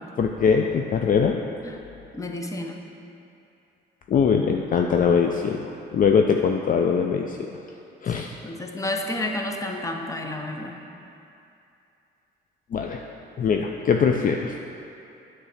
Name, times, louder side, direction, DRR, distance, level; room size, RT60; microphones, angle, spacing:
voice 1, 0.2-1.4 4.1-7.4 8.0-8.3 12.7-14.5, left 6 dB, 45° left, 3 dB, 0.4 m, -22 dB
voice 2, 2.1-2.8 8.1-10.8, left 1 dB, 15° left, 3 dB, 0.7 m, -31 dB
8.2 x 3.3 x 6.5 m, 2.7 s
cardioid pair, 90°, 20 cm